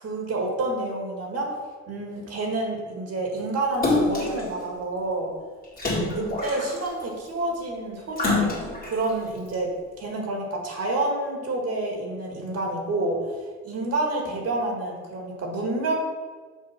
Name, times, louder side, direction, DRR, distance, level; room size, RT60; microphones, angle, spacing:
voice 1, 0.0-1.5 1.9-5.3 6.1-9.7 10.0-13.3 13.6-15.9, right 2 dB, 55° right, 0 dB, 1.8 m, -28 dB
Splash splatter, 3.8-4.4 5.8-7.0 8.2-8.9 9.5-9.6, left 2 dB, 30° left, 2.0 m, -25 dB
6.3 x 3.5 x 5.9 m, 1.5 s
cardioid pair, 90°, 30 cm